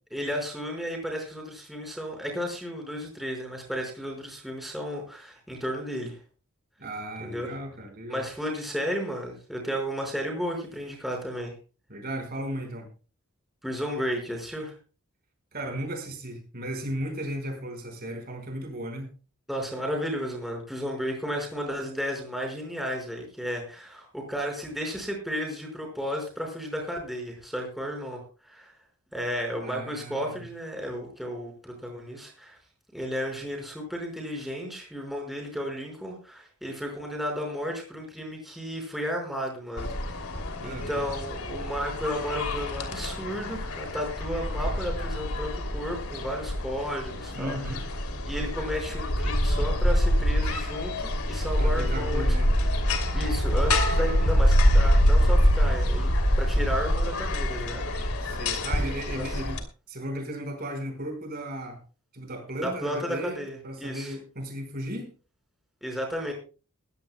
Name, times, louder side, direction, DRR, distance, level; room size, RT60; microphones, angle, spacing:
voice 1, 0.1-6.2 7.2-7.5 8.1-11.5 13.6-14.7 19.5-28.7 29.1-32.6 32.9-40.3 40.6-47.6 48.2-52.3 53.1-57.9 59.1-59.4 62.6-64.1 65.8-66.3, equal, ahead, 0 dB, 5.1 m, -33 dB
voice 2, 6.8-8.2 11.9-12.9 15.5-19.1 29.6-30.4 40.6-41.0 47.3-47.8 51.6-52.5 58.2-59.6 59.9-61.8 62.1-65.1, right 1 dB, 45° right, 4 dB, 5.0 m, -35 dB
sound 1, 39.8-59.6, equal, 80° left, 2.9 m, -25 dB
21.0 x 16.0 x 2.2 m, 0.35 s
head